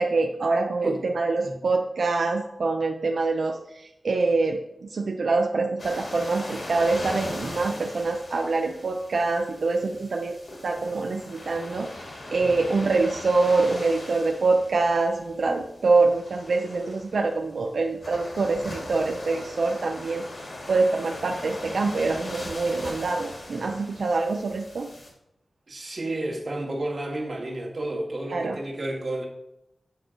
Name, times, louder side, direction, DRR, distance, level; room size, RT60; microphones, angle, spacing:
voice 1, 0.0-10.4 10.6-24.9 28.3-28.6, right 3 dB, 85° right, 2 dB, 0.5 m, -25 dB
sound 1, 5.8-25.1, left 1 dB, 65° left, 2.0 m, -39 dB
voice 2, 25.7-29.3, right 1 dB, 55° right, -2 dB, 1.7 m, -31 dB
8.3 x 4.5 x 5.1 m, 0.85 s
wide cardioid pair, 100°, 0 cm